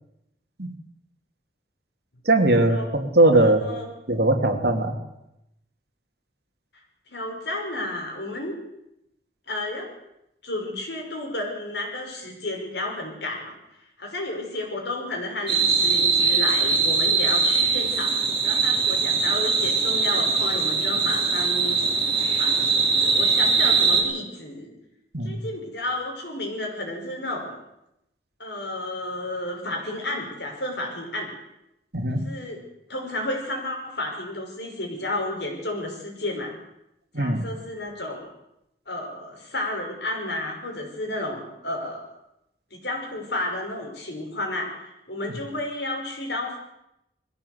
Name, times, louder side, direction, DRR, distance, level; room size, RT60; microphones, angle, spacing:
voice 1, 2.3-3.6 4.1-5.0 25.1-25.4 31.9-32.2 37.1-37.4, right 2 dB, 65° right, 5 dB, 2.6 m, -20 dB
voice 2, 3.3-3.9 7.1-8.5 9.5-9.9 10.4-13.5 14.0-21.8 22.4-24.7 25.2-27.5 28.4-31.3 32.1-32.6 32.9-36.5 37.2-38.3 38.9-42.1 42.7-46.6, left 1 dB, 75° left, 1 dB, 5.9 m, -32 dB
sound 1, 15.5-24.0, right 4 dB, 30° right, 5.1 m, -21 dB
21.0 x 15.0 x 8.2 m, 0.85 s
head